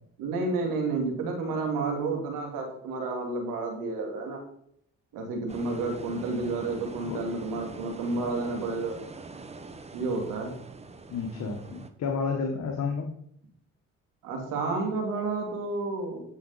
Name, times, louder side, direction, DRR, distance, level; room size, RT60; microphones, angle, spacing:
voice 1, 0.2-4.4 5.1-9.0 9.9-10.6 14.2-16.2, right 3 dB, 90° right, 2 dB, 2.5 m, -30 dB
sound 1, 5.5-11.9, right 3 dB, 20° right, 1.0 m, -44 dB
voice 2, 11.1-13.2, left 5 dB, 60° left, 2 dB, 1.4 m, -31 dB
10.5 x 6.2 x 4.1 m, 0.67 s
cardioid pair, 95°, 31 cm